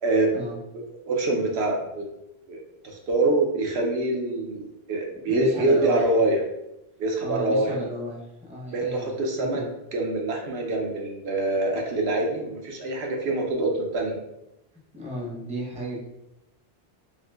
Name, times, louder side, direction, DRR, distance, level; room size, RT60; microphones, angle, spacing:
voice 1, 0.0-0.3 0.7-2.0 2.5-6.4 7.0-7.7 8.7-9.6 9.9-14.2, right 2 dB, 80° right, 0 dB, 0.9 m, -25 dB
voice 2, 5.1-6.3 7.2-9.7 14.9-16.1, equal, 10° right, -5 dB, 0.6 m, -34 dB
3.6 x 2.5 x 2.3 m, 0.88 s
omnidirectional pair, 1.1 m